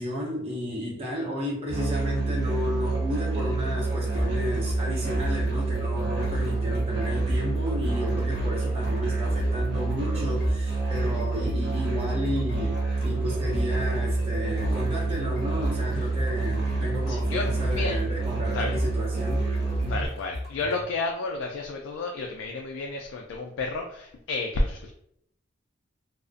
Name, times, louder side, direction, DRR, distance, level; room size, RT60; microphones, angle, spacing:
voice 1, 0.0-19.4 19.8-20.1, left 1 dB, 30° right, -4 dB, 0.6 m, -32 dB
Musical instrument, 1.7-20.1, right 3 dB, 60° right, 0.8 m, -28 dB
sound 1, 4.1-20.8, left 1 dB, 55° left, 0.9 m, -35 dB
voice 2, 17.1-17.5 17.7-18.0 18.5-18.7 19.9-24.9, left 3 dB, 85° left, 1 dB, 0.3 m, -31 dB
2.5 x 2.0 x 2.4 m, 0.72 s
head